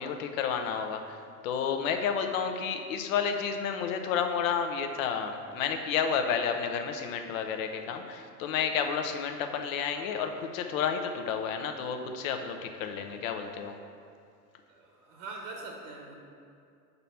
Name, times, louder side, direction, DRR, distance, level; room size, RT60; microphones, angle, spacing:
voice 1, 0.0-13.8, left 7 dB, 60° left, 6 dB, 0.8 m, -31 dB
voice 2, 14.7-16.1, right 3 dB, 60° right, -1 dB, 1.3 m, -43 dB
5.6 x 4.0 x 5.6 m, 2.4 s
hypercardioid pair, 95°, 46 cm